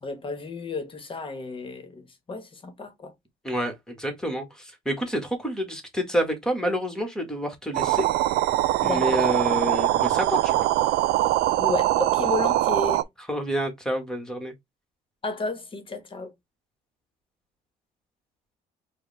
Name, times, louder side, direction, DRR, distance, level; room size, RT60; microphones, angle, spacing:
voice 1, 0.0-2.0 2.3-3.1 8.8-9.3 11.6-13.0 15.2-16.3, left 3 dB, 30° left, 1.2 m, -32 dB
voice 2, 3.4-8.1 8.8-10.7 13.3-14.5, equal, 5° left, 1.5 m, -28 dB
sound 1, 7.7-13.0, right 15 dB, 75° right, 0.4 m, -22 dB
4.9 x 2.4 x 3.3 m
cardioid pair, 110°, 17 cm